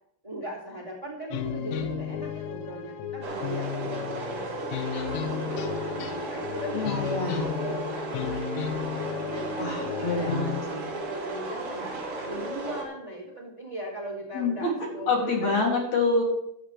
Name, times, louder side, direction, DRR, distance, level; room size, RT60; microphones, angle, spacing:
voice 1, 0.2-8.9 9.3-10.3 10.7-12.0 12.2-15.6, right 1 dB, 85° right, -3 dB, 0.3 m, -39 dB
sound 1, 1.3-10.6, left 9 dB, 90° left, 3.5 m, -34 dB
sound 2, 3.2-12.8, right 2 dB, 35° right, 3.1 m, -34 dB
voice 2, 6.7-7.5 9.5-10.9 14.3-14.7 15.1-16.2, left 3 dB, 40° left, -1 dB, 3.2 m, -26 dB
15.5 x 13.0 x 3.3 m, 0.78 s
omnidirectional pair, 5.8 m